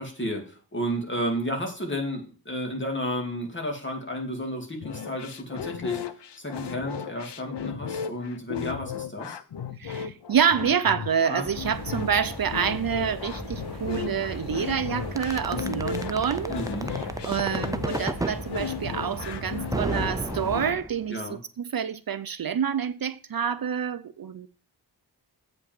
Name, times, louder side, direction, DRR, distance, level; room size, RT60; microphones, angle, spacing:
voice 1, 0.0-9.4 11.3-11.5 15.5-15.8 16.5-17.0 21.1-21.4, equal, 30° left, 2.6 m, -32 dB
sound 1, 4.8-20.8, left 7 dB, 80° left, 0.8 m, -35 dB
voice 2, 9.8-16.5 17.2-24.5, right 7 dB, 60° right, 0.6 m, -27 dB
sound 2, 11.4-20.6, left 1 dB, 65° left, 3.2 m, -37 dB
sound 3, 15.2-18.4 19.7-21.1, right 2 dB, 10° right, 0.5 m, -30 dB
8.1 x 5.4 x 7.5 m
wide cardioid pair, 115°, 41 cm